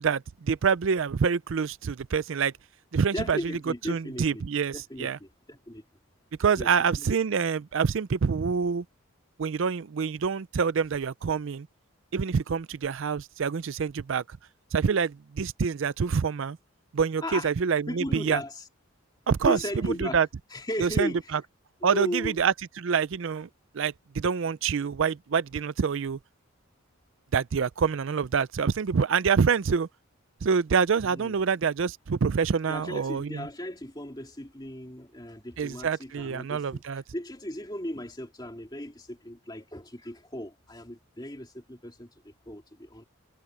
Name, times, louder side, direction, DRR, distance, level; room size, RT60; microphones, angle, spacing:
voice 1, 0.0-2.5 2.9-3.4 3.9-5.2 6.4-8.8 9.4-11.7 12.1-14.2 14.7-16.6 16.9-18.4 19.3-19.6 20.0-20.3 20.8-21.4 21.8-23.5 23.7-26.2 27.3-29.9 30.4-33.4 35.6-37.0, right 6 dB, 60° right, 0.4 m, -26 dB
voice 2, 3.1-4.4 4.7-5.8 6.6-7.1 17.2-17.5 17.9-18.6 19.5-20.2 20.5-21.4 21.8-22.4 31.0-31.3 32.7-43.0, left 1 dB, 20° left, 2.7 m, -36 dB
head